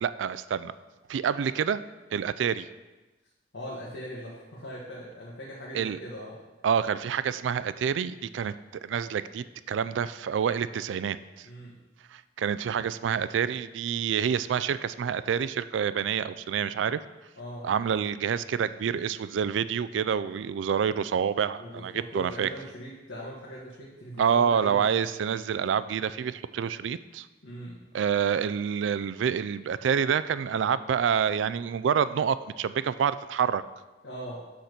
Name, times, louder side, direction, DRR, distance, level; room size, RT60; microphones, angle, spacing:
voice 1, 0.0-0.7 1.1-1.8 2.1-2.7 5.7-6.0 6.6-8.5 8.8-11.5 12.1-17.0 17.6-22.5 24.2-27.3 27.9-33.6, right 7 dB, 80° right, 15 dB, 0.3 m, -27 dB
voice 2, 3.5-6.4 11.4-11.8 17.4-17.7 21.6-24.9 27.4-27.8 34.0-34.4, equal, 90° left, -6 dB, 1.7 m, -40 dB
6.3 x 5.8 x 6.7 m, 1.1 s
head